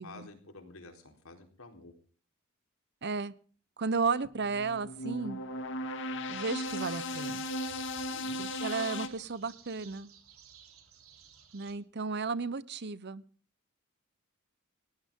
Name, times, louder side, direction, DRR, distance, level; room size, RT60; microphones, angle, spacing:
voice 1, 0.0-1.9 8.1-8.4, left 3 dB, 85° left, 4 dB, 4.2 m, -50 dB
voice 2, 3.0-3.3 3.8-5.4 6.3-7.4 8.4-10.1 11.5-13.2, right 4 dB, 55° right, 18 dB, 0.9 m, -34 dB
sound 1, 4.2-9.1, left 1 dB, 60° left, 2.1 m, -37 dB
sound 2, 6.5-11.7, right 8 dB, 85° right, 3.6 m, -56 dB
19.5 x 18.0 x 3.8 m, 0.43 s
head